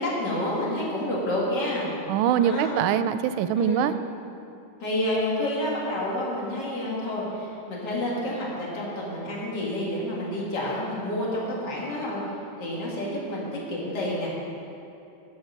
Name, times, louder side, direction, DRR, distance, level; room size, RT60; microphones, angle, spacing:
voice 1, 0.0-1.9 2.4-2.7 3.5-3.9 4.8-12.2 12.6-14.4, left 1 dB, 55° left, -5 dB, 2.8 m, -29 dB
voice 2, 2.1-3.9, right 9 dB, 80° right, 12 dB, 1.3 m, -23 dB
12.0 x 7.1 x 7.4 m, 2.9 s
omnidirectional pair, 2.3 m